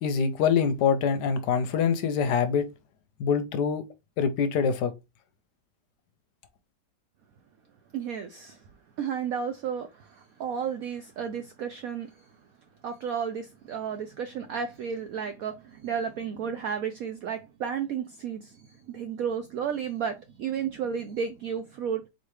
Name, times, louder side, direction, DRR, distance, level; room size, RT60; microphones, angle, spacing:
voice 1, 0.0-2.7 3.2-3.8 4.2-4.9, left 6 dB, 70° left, 1.1 m, -24 dB
voice 2, 7.9-8.6 9.0-12.4 12.8-22.0, right 7 dB, 80° right, 0.8 m, -33 dB
4.2 x 3.1 x 3.1 m
omnidirectional pair, 2.0 m